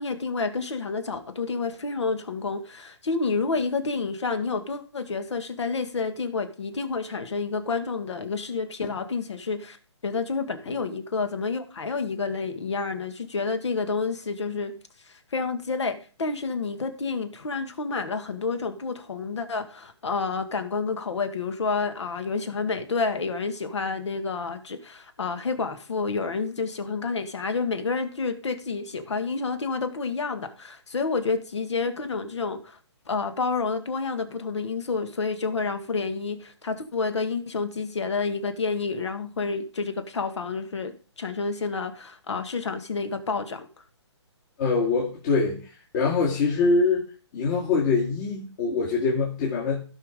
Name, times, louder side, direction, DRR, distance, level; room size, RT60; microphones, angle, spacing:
voice 1, 0.0-9.8 10.0-14.7 15.3-32.8 33.1-43.7, left 4 dB, 70° left, 1.9 m, -29 dB
voice 2, 44.6-49.8, left 4 dB, 40° left, 2.3 m, -24 dB
16.5 x 5.8 x 3.7 m
hypercardioid pair, 145°, 15 cm